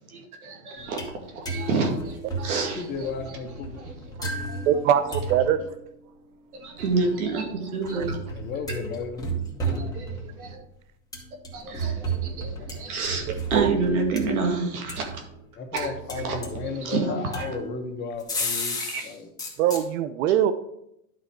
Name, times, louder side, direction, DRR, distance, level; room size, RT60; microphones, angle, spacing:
voice 1, 0.1-3.4 3.8-4.7 5.0-5.2 6.5-8.2 9.6-10.6 11.5-15.2 15.7-15.9 16.2-16.4 16.7-17.5 18.9-19.0, right 4 dB, 85° right, 2 dB, 2.2 m, -29 dB
sound 1, 0.8-1.2 1.5-5.8 6.8-10.6 11.1-15.4 15.8-16.8 17.3-19.1 19.4-19.8, right 2 dB, 10° left, 1.5 m, -33 dB
voice 2, 2.7-3.9 8.3-9.4 15.6-19.3, left 5 dB, 25° left, 4 dB, 1.1 m, -34 dB
voice 3, 4.7-5.6 7.9-8.0 10.5-10.6 13.5-14.0 19.6-20.5, right 10 dB, 65° right, 12 dB, 0.7 m, -23 dB
11.5 x 4.1 x 4.5 m, 0.78 s
supercardioid pair, 135°, 43 cm